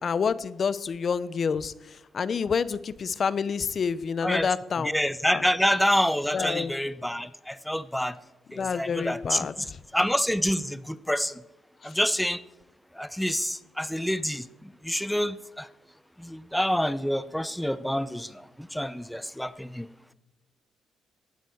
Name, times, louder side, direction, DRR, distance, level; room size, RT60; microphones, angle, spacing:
voice 1, 0.0-4.9 5.3-5.4 6.3-6.7 8.6-9.5 11.8-11.9, left 6 dB, 45° left, 16 dB, 0.7 m, -28 dB
voice 2, 4.2-4.5 4.8-8.2 8.5-9.7 9.9-11.4 11.8-12.4 12.9-15.7 16.2-19.9, equal, 5° left, 15 dB, 0.7 m, -27 dB
18.0 x 8.2 x 7.8 m, 0.98 s
cardioid pair, 90°, 0 cm